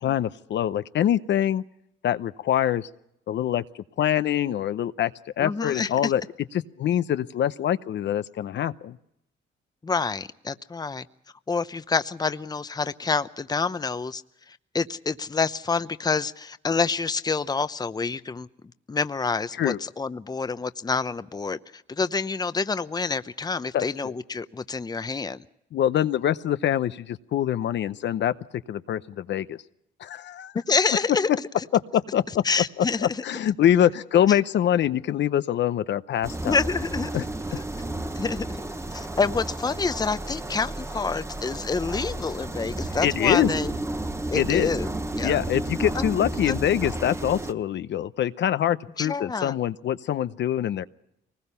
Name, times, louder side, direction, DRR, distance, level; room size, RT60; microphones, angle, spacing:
voice 1, 0.0-1.6 2.0-2.9 3.3-5.1 5.4-6.2 6.5-9.0 19.6-19.8 23.7-24.1 25.7-28.3 28.7-29.6 30.0-30.5 31.7-32.4 32.8-36.6 37.1-37.2 43.0-43.5 44.3-44.7 45.2-50.8, left 10 dB, 65° left, 13 dB, 0.7 m, -24 dB
voice 2, 5.4-6.1 9.8-11.1 11.5-14.2 14.7-18.5 18.9-25.4 30.7-31.3 32.4-33.2 34.3-34.4 36.5-37.1 37.5-37.6 38.2-38.5 38.9-43.7 44.3-45.4 45.9-46.0 46.5-46.6 49.0-49.5, left 4 dB, 20° left, 13 dB, 0.8 m, -27 dB
sound 1, 36.2-47.5, right 2 dB, 15° right, 1.1 m, -32 dB
23.5 x 20.0 x 5.6 m, 0.78 s
cardioid pair, 90°, 20 cm